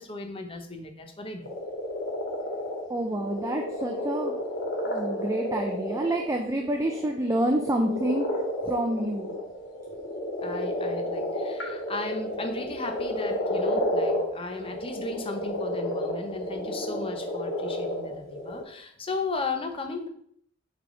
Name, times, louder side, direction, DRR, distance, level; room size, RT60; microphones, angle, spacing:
voice 1, 0.0-1.5 5.1-5.2 10.4-20.1, left 3 dB, 30° left, 5 dB, 0.8 m, -36 dB
sound 1, 1.4-18.6, left 1 dB, 75° left, 2.2 m, -31 dB
voice 2, 2.9-4.4 4.9-8.3 8.7-9.3, right 1 dB, 15° right, 3 dB, 0.5 m, -28 dB
8.0 x 3.5 x 3.8 m, 0.65 s
head